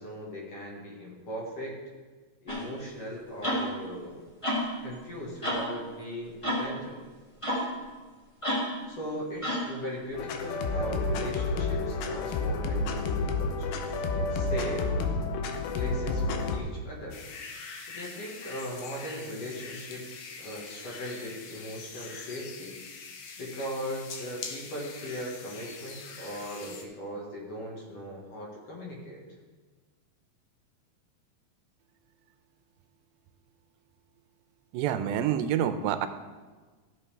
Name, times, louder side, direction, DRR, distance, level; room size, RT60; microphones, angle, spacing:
voice 1, 0.0-1.8 2.4-4.2 4.8-7.0 7.4-7.6 8.9-14.9 15.7-17.2 17.8-22.7 23.4-29.2, equal, 50° left, -3 dB, 2.3 m, -39 dB
sound 1, 2.5-2.7 3.4-3.7 4.4-4.7 5.4-5.7 6.4-6.7 7.4-7.7 8.4-8.8 9.4-9.7, equal, 10° left, 1.4 m, -29 dB
sound 2, 10.1-16.6, left 3 dB, 85° left, 2.7 m, -30 dB
sound 3, 17.1-26.8, left 5 dB, 70° left, 1.9 m, -43 dB
voice 2, 34.7-36.1, right 10 dB, 90° right, 9 dB, 2.4 m, -27 dB
15.0 x 6.9 x 3.4 m, 1.4 s
omnidirectional pair, 4.1 m